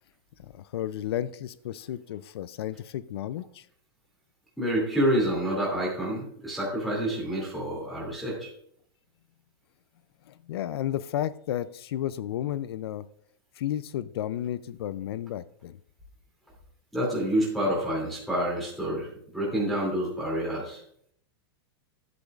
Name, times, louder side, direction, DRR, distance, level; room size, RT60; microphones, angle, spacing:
voice 1, 0.4-3.7 10.3-13.0 13.5-15.8, left 11 dB, 80° left, 16 dB, 0.4 m, -33 dB
voice 2, 4.6-8.5 16.9-20.8, right 1 dB, ahead, -4 dB, 2.6 m, -28 dB
10.0 x 8.4 x 2.4 m, 0.65 s
supercardioid pair, 150°, 13 cm